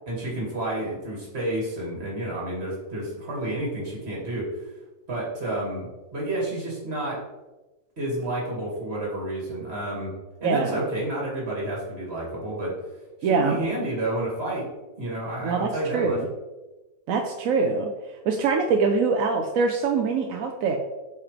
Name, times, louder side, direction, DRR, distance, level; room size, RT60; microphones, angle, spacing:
voice 1, 0.1-4.7 5.1-7.2 8.0-10.1 10.4-12.7 13.2-14.7 15.0-16.2, right 1 dB, 35° right, -4 dB, 2.3 m, -30 dB
voice 2, 10.4-10.8 13.2-13.6 15.4-16.3 17.1-17.9 18.3-20.8, right 4 dB, 65° right, 3 dB, 0.8 m, -23 dB
7.3 x 4.9 x 3.3 m, 1.1 s
omnidirectional pair, 1.9 m